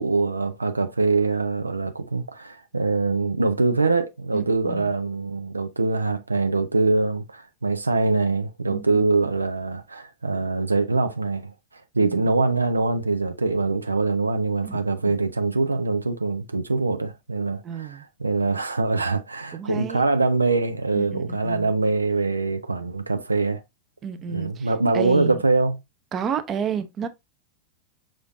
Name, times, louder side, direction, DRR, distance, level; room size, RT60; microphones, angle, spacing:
voice 1, 0.0-11.5 11.9-23.6 24.3-25.8, right 3 dB, 80° right, 0.4 m, -23 dB
voice 2, 4.3-4.9 8.7-9.1 14.6-14.8 17.6-18.0 19.5-20.1 20.9-21.7 24.0-25.4 26.1-27.1, right 7 dB, 25° right, 0.6 m, -31 dB
5.8 x 3.1 x 2.5 m
figure-of-eight pair, 90°, 0 cm